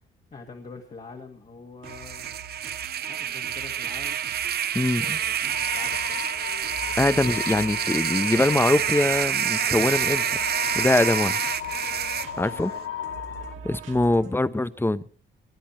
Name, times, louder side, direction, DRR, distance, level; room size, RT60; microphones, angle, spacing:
voice 1, 0.3-2.4 3.1-4.3 5.0-6.2 11.2-11.5 12.4-12.8 13.6-13.7, left 4 dB, 40° left, 1 dB, 1.9 m, -45 dB
sound 1, 1.8-14.6, right 6 dB, 80° right, 2.7 m, -44 dB
sound 2, 1.9-12.3, right 10 dB, 55° right, 0.6 m, -28 dB
voice 2, 4.7-5.2 7.0-10.2 10.7-11.4 12.4-12.7 13.6-15.0, left 2 dB, 10° left, 15 dB, 0.8 m, -23 dB
sound 3, 5.5-13.5, left 9 dB, 65° left, 0.9 m, -35 dB
21.0 x 10.0 x 4.4 m, 0.41 s
cardioid pair, 90°, 20 cm